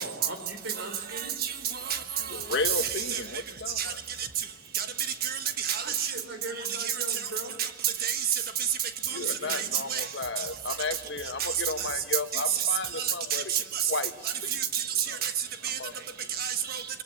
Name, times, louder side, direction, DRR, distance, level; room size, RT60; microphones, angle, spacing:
voice 1, 0.0-1.3 5.8-7.5 9.1-9.8, right 2 dB, 70° right, 4.2 m, -40 dB
voice 2, 1.1-3.2 3.8-3.9 4.2-4.3 4.7-4.9 5.2-6.1 6.6-7.2 7.6-8.7 9.0-10.1 10.4-10.5 11.4-11.9 12.3-12.7 12.9-13.9 14.2-15.3 15.6-15.8 16.3-16.9, right 9 dB, 50° right, 1.4 m, -30 dB
voice 3, 2.3-3.8 9.1-13.4 13.9-14.1 15.1-15.2 15.8-15.9, left 3 dB, 60° left, 1.5 m, -33 dB
26.0 x 22.0 x 7.4 m
head